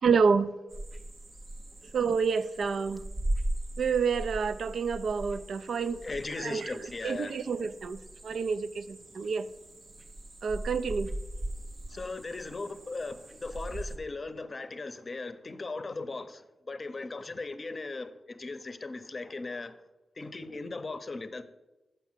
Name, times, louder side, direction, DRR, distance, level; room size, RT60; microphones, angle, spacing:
voice 1, 0.0-0.5 1.9-3.0 3.8-6.0 6.4-9.5 10.4-11.1, right 5 dB, 80° right, 0.4 m, -28 dB
sound 1, 0.7-14.0, right 1 dB, 35° right, 0.6 m, -39 dB
voice 2, 6.0-7.4 11.9-19.7 20.2-21.4, left 3 dB, 40° left, 0.6 m, -38 dB
6.8 x 5.9 x 7.3 m
wide cardioid pair, 110°, 0 cm